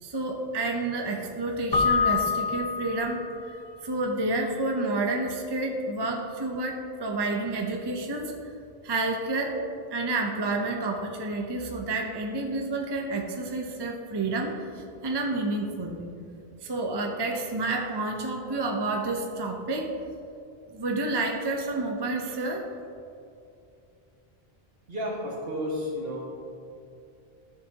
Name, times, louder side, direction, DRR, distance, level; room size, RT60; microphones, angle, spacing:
voice 1, 0.0-3.6 3.8-8.5 8.8-9.6 9.9-16.1 16.6-19.9 20.7-22.7, right 2 dB, 30° right, 1 dB, 0.7 m, -29 dB
Keyboard (musical), 1.7-3.5, left 5 dB, 35° left, 0.4 m, -26 dB
voice 2, 24.9-26.3, equal, 65° right, -3 dB, 1.9 m, -32 dB
12.5 x 7.2 x 2.8 m, 2.6 s
omnidirectional pair, 1.0 m